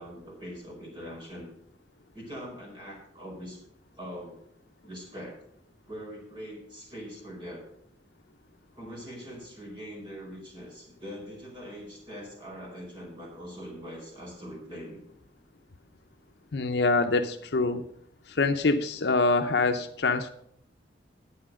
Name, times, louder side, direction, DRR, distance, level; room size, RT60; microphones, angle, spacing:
voice 1, 0.0-1.5 2.1-3.6 3.9-4.4 4.8-5.4 5.8-7.7 8.7-15.0, equal, 30° right, -2 dB, 4.9 m, -42 dB
voice 2, 16.5-17.9 18.3-20.3, left 3 dB, 65° left, 6 dB, 0.7 m, -25 dB
9.6 x 8.4 x 6.2 m, 0.70 s
head